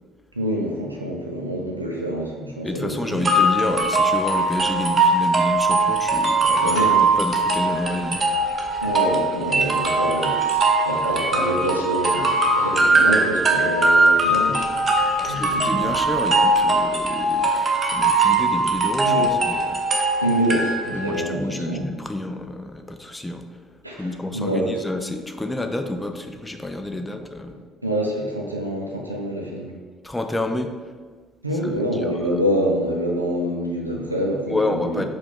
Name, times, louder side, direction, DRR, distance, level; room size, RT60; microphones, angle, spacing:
voice 1, 0.3-3.3 6.2-6.3 6.6-7.1 8.8-15.9 19.0-19.3 20.2-21.9 23.8-24.8 26.9-27.0 27.5-29.7 31.4-35.0, equal, 90° right, -1 dB, 0.4 m, -26 dB
voice 2, 2.6-8.3 15.2-19.8 20.9-23.4 23.9-27.6 30.0-30.7 31.6-31.8 32.2-32.3 34.5-35.0, left 1 dB, 10° left, 6 dB, 0.4 m, -29 dB
sound 1, 3.2-21.2, right 2 dB, 35° right, 0.6 m, -20 dB
4.6 x 2.4 x 3.7 m, 1.5 s
figure-of-eight pair, 50°, 0 cm